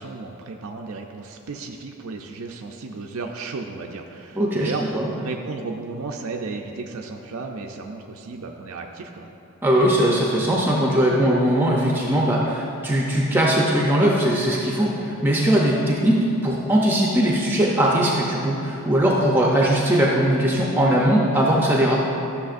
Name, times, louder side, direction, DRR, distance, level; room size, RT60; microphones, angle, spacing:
voice 1, 0.0-9.3, right 3 dB, 75° right, 2 dB, 0.5 m, -34 dB
voice 2, 4.3-5.1 9.6-22.1, right 1 dB, 10° right, -3 dB, 0.6 m, -20 dB
13.0 x 6.7 x 2.5 m, 2.8 s
head